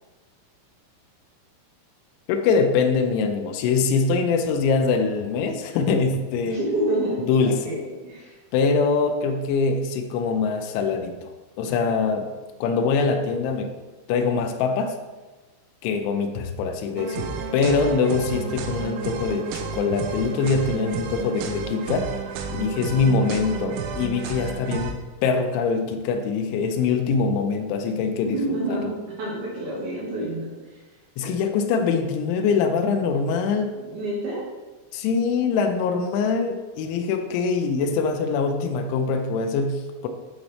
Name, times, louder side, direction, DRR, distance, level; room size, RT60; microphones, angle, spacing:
voice 1, 2.3-6.6 7.3-7.7 8.5-11.3 11.6-12.3 12.6-13.8 14.1-15.0 15.8-22.1 22.5-28.8 31.2-33.7 34.9-40.1, left 5 dB, 85° left, 6 dB, 2.7 m, -23 dB
voice 2, 6.5-8.4 28.2-28.9 29.2-30.5 33.8-34.4, right 1 dB, 65° right, -7 dB, 2.8 m, -28 dB
sound 1, 17.0-24.9, right 5 dB, 85° right, 3.3 m, -31 dB
11.5 x 4.2 x 3.2 m, 1.2 s
omnidirectional pair, 6.0 m